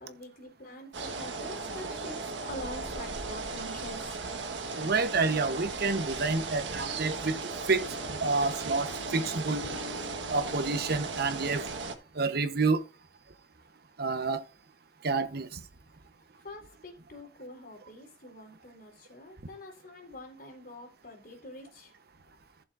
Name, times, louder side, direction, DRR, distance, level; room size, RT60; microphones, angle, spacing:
voice 1, 0.0-4.2 16.4-21.9, left 1 dB, 55° left, 4.0 m, -45 dB
Garden Ambience, 0.9-12.0, right 3 dB, 80° right, 1.6 m, -36 dB
voice 2, 4.7-9.7 10.3-11.6 12.1-12.8 14.0-14.4 15.0-15.6, right 3 dB, 60° right, 1.0 m, -29 dB
14.5 x 7.0 x 2.6 m
head